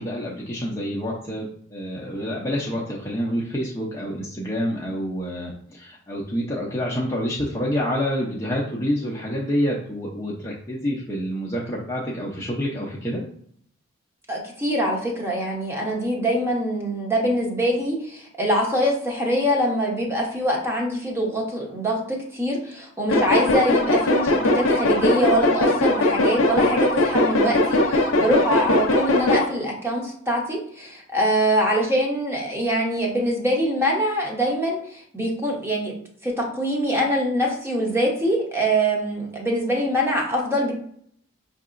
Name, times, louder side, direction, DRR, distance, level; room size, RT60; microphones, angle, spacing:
voice 1, 0.0-13.2, equal, 15° left, -4 dB, 0.5 m, -27 dB
voice 2, 14.3-35.9 36.2-40.7, equal, 10° right, -1 dB, 0.8 m, -24 dB
sound 1, 23.1-29.4, left 2 dB, 65° left, 0.6 m, -20 dB
5.8 x 2.8 x 2.5 m, 0.64 s
head